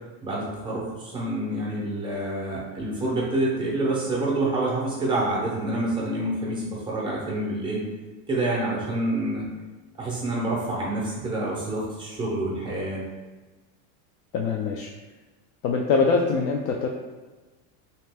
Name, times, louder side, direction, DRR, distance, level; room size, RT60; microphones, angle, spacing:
voice 1, 0.2-7.8 8.3-9.4 9.9-13.0, right 1 dB, 10° right, -5 dB, 0.4 m, -27 dB
voice 2, 14.3-14.9 15.6-16.9, left 4 dB, 85° left, 1 dB, 0.5 m, -23 dB
3.2 x 2.8 x 3.3 m, 1.2 s
supercardioid pair, 160°, 43 cm